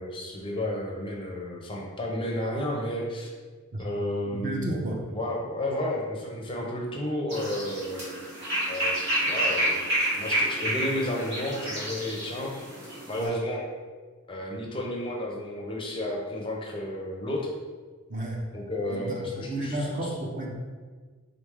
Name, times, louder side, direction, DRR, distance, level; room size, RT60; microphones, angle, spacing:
voice 1, 0.0-3.3 3.8-4.8 5.1-8.1 8.7-9.8 10.1-12.5 13.1-13.6 14.3-17.5 18.5-19.7, left 1 dB, 25° left, -1 dB, 0.5 m, -32 dB
voice 2, 4.3-5.0 13.2-13.4 18.1-18.4 18.9-20.5, right 1 dB, 35° right, 0 dB, 0.6 m, -32 dB
sound 1, 7.3-13.3, right 1 dB, 55° right, 1.4 m, -29 dB
3.8 x 3.1 x 3.5 m, 1.4 s
head